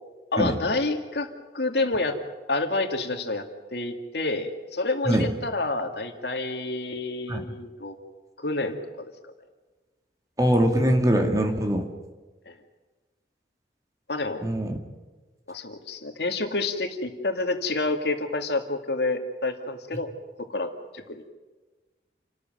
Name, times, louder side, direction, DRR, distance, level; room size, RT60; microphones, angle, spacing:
voice 1, 0.3-2.2 2.5-8.0 8.4-9.1 12.5-12.6 14.1-14.4 15.5-20.1 20.5-21.2, left 2 dB, 75° left, 6 dB, 2.3 m, -28 dB
voice 2, 10.4-11.9 14.4-14.8, equal, 20° right, 4 dB, 2.4 m, -22 dB
28.5 x 13.5 x 9.2 m, 1.3 s
head